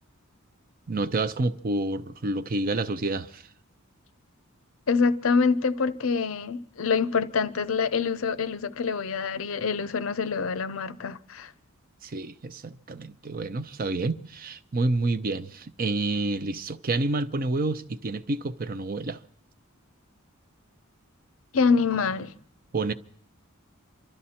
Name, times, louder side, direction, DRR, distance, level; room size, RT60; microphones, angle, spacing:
voice 1, 0.9-3.5 12.0-19.2 22.7-22.9, right 2 dB, 40° right, 0.6 m, -29 dB
voice 2, 4.9-11.5 21.5-22.3, left 5 dB, 70° left, 0.6 m, -25 dB
27.0 x 12.5 x 4.3 m
head